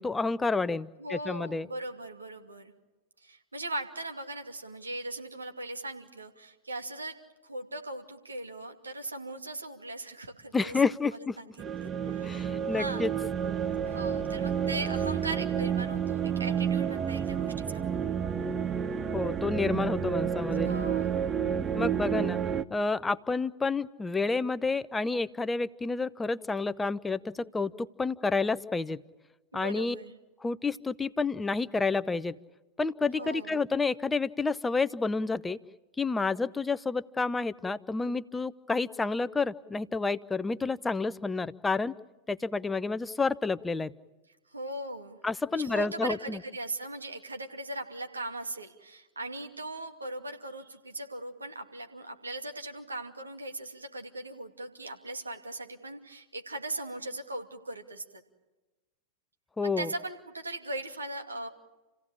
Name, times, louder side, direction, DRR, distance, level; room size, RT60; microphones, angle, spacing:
voice 1, 0.0-1.7 10.5-11.4 12.2-13.1 19.1-20.7 21.7-22.4 22.7-29.0 29.5-30.0 30.4-32.3 32.8-35.6 36.0-41.9 42.3-43.9 45.2-46.4 59.6-59.9, left 4 dB, 10° left, 15 dB, 0.7 m, -29 dB
voice 2, 1.0-2.7 3.2-7.2 7.4-11.5 11.8-13.1 13.9-17.9 20.6-21.3 29.5-30.2 33.1-33.6 44.5-45.2 45.5-58.2 59.6-61.5, right 2 dB, 80° right, 4 dB, 2.5 m, -39 dB
sound 1, 11.6-22.6, right 8 dB, 25° right, 0.9 m, -30 dB
29.0 x 16.5 x 8.7 m, 1.1 s
figure-of-eight pair, 90°, 0 cm